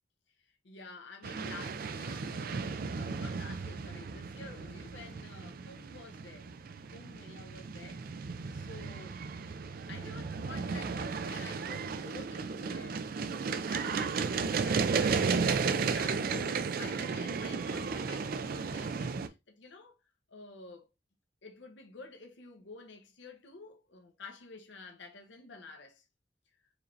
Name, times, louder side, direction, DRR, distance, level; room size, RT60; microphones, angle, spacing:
voice 1, 0.6-6.5 6.9-9.2 9.9-13.0 13.7-20.0 20.3-20.9 21.4-26.0, left 4 dB, 85° left, 0.8 m, -50 dB
sound 1, 1.2-19.3, right 5 dB, 50° right, 0.4 m, -34 dB
4.8 x 3.1 x 2.6 m
head